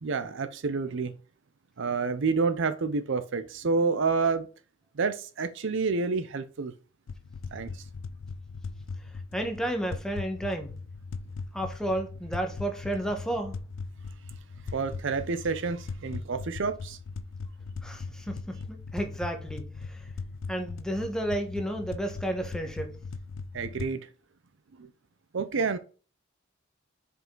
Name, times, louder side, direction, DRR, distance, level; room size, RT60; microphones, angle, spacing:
voice 1, 0.0-1.1 1.8-4.5 4.9-6.7 7.5-7.8 14.7-17.0 23.5-24.0 24.8-24.9 25.3-25.8, right 4 dB, 65° right, 0.6 m, -29 dB
sound 1, 7.1-23.9, left 4 dB, 70° left, 0.4 m, -39 dB
voice 2, 9.3-10.7 11.5-13.6 17.8-20.1 20.5-23.0, right 1 dB, 5° left, 1.1 m, -32 dB
5.4 x 5.1 x 3.8 m
head